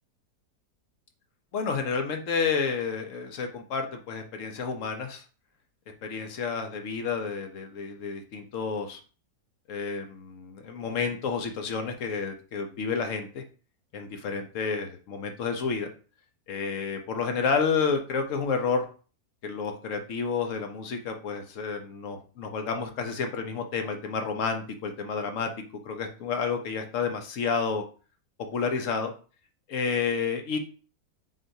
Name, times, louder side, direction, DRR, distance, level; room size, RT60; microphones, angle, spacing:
voice 1, 1.5-5.2 6.0-9.0 9.7-13.4 13.9-15.9 16.5-18.9 19.4-25.5 25.8-27.8 28.5-29.1 29.7-30.6, left 5 dB, 60° left, 5 dB, 0.9 m, -30 dB
7.5 x 2.5 x 2.7 m, 0.38 s
omnidirectional pair, 1.7 m